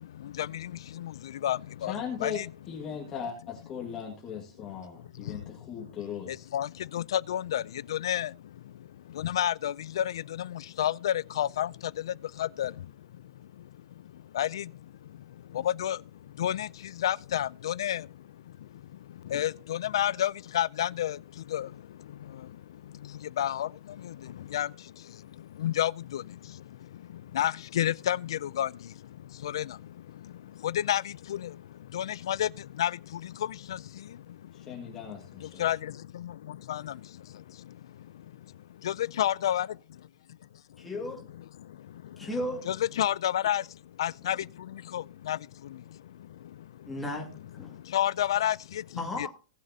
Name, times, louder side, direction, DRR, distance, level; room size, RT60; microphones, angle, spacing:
voice 1, 0.0-2.5 4.7-6.0 6.2-39.7 40.8-40.9 41.5-42.3 42.6-47.0 47.6-49.3, left 11 dB, 90° left, 0.4 m, -32 dB
voice 2, 1.9-6.4 34.5-35.6, left 7 dB, 20° left, 1.8 m, -38 dB
voice 3, 40.8-41.3 42.2-42.7 46.9-47.3 47.5-47.7 49.0-49.3, left 1 dB, 5° left, 2.2 m, -34 dB
19.0 x 7.4 x 2.8 m
supercardioid pair, 170°, 2 cm